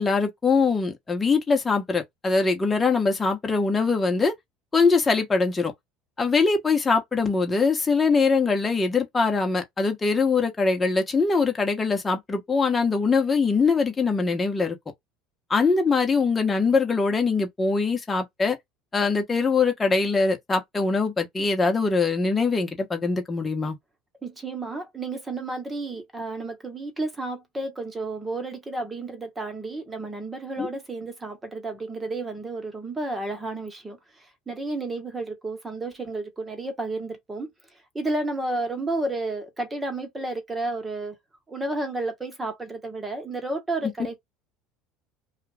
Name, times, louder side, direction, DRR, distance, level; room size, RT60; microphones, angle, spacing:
voice 1, 0.0-4.3 4.7-5.7 6.2-14.8 15.5-18.6 18.9-23.7 30.6-30.7 43.8-43.9, left 4 dB, 20° left, 1.1 m, -22 dB
voice 2, 24.2-34.0 34.5-37.5 37.9-41.1 41.5-44.2, right 2 dB, 15° right, 1.3 m, -31 dB
2.4 x 2.4 x 3.3 m
supercardioid pair, 95°, 0 cm